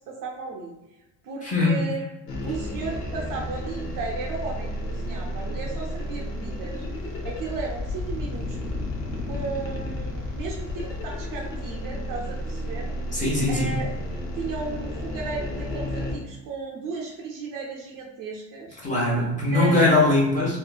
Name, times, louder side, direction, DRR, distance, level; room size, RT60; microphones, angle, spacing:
voice 1, 0.1-0.7 1.2-2.1 2.4-6.8 7.2-8.8 9.3-12.9 13.5-13.9 14.4-18.8 19.5-20.0, right 4 dB, 45° right, -1 dB, 0.6 m, -35 dB
voice 2, 1.4-1.8 13.1-13.8 18.8-20.6, left 2 dB, 15° left, -4 dB, 1.1 m, -21 dB
sound 1, 2.3-16.2, left 1 dB, 60° left, 1.0 m, -32 dB
3.6 x 2.2 x 2.3 m, 0.97 s
figure-of-eight pair, 60°, 47 cm